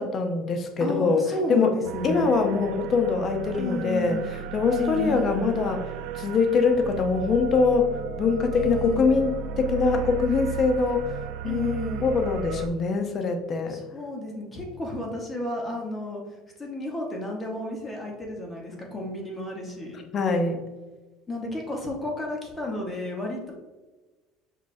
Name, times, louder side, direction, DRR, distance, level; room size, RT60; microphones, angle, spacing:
voice 1, 0.0-1.7 2.0-5.9 6.1-13.8 20.1-20.6, left 4 dB, 35° left, 5 dB, 0.5 m, -24 dB
voice 2, 0.8-2.3 3.6-4.3 4.8-5.4 8.5-9.1 11.4-12.1 13.7-16.2 16.6-20.0 21.3-23.5, left 1 dB, 15° left, -1 dB, 1.0 m, -32 dB
sound 1, 1.8-12.7, right 7 dB, 70° right, 0.3 m, -35 dB
6.0 x 3.1 x 2.6 m, 1.2 s
supercardioid pair, 120°, 0 cm